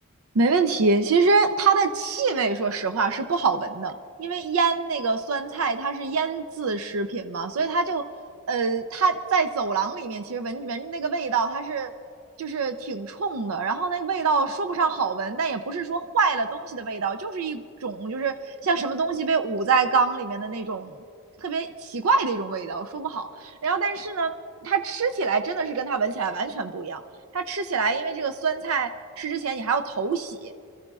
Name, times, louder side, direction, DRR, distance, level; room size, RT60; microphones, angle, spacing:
voice 1, 0.3-8.0 8.5-11.9 12.4-20.9 21.4-24.3 24.6-27.0 27.3-28.9 29.2-30.5, right 4 dB, 75° right, 8 dB, 0.5 m, -25 dB
27.0 x 14.5 x 2.4 m, 2.5 s
head